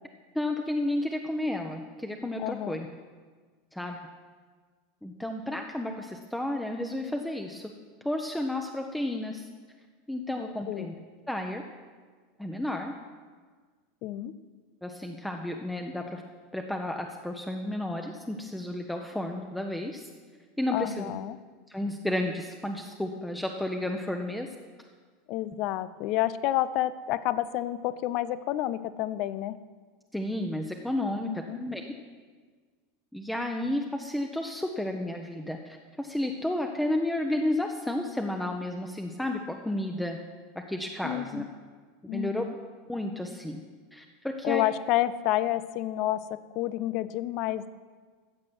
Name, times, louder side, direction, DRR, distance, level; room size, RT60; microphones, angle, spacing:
voice 1, 0.3-2.9 3.7-4.1 5.0-7.7 8.0-9.5 10.1-10.9 11.3-11.6 12.4-12.9 14.8-16.2 16.5-20.1 20.6-21.1 21.7-24.5 30.1-31.9 33.1-40.2 40.7-41.5 42.1-42.4 42.9-43.6 43.9-44.6, left 1 dB, 5° left, 3 dB, 1.0 m, -32 dB
voice 2, 2.4-2.8 10.3-10.9 14.0-14.3 20.7-21.4 25.3-29.6 31.2-31.6 41.0-41.5 42.1-42.5 44.4-47.7, left 14 dB, 50° left, 15 dB, 0.6 m, -30 dB
14.5 x 7.7 x 6.3 m, 1.5 s
figure-of-eight pair, 80°, 0 cm